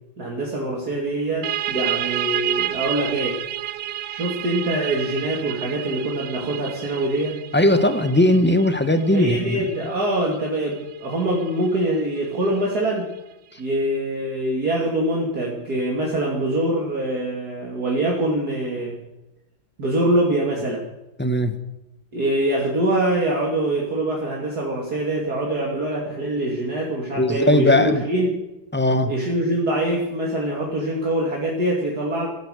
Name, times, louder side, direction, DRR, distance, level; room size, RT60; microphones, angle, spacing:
voice 1, 0.2-3.4 4.1-7.4 9.1-13.1 13.6-19.0 19.8-20.8 22.1-28.3 29.0-32.3, right 1 dB, 50° right, -2 dB, 3.1 m, -24 dB
sound 1, 1.4-12.8, right 13 dB, 70° right, 1.3 m, -31 dB
voice 2, 7.5-9.6 21.2-21.5 27.2-28.0 28.7-29.1, left 1 dB, 10° left, 9 dB, 0.9 m, -18 dB
15.5 x 13.0 x 6.6 m, 0.95 s
omnidirectional pair, 2.1 m